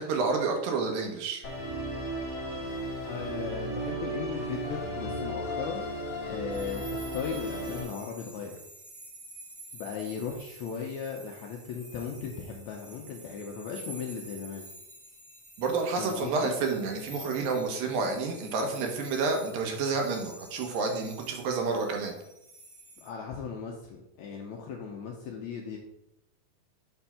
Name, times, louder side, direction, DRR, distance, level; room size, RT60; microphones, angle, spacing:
voice 1, 0.0-1.5 15.6-22.1, right 4 dB, 80° right, 2 dB, 2.8 m, -29 dB
Musical instrument, 1.4-7.8, right 1 dB, 50° left, 1.5 m, -35 dB
voice 2, 3.1-5.9 6.3-8.6 9.7-14.7 16.0-16.5 23.0-25.8, left 6 dB, 80° left, 0 dB, 1.7 m, -37 dB
sound 1, 6.5-23.1, right 2 dB, 40° right, 0.6 m, -49 dB
6.9 x 3.5 x 5.6 m, 0.84 s
omnidirectional pair, 4.0 m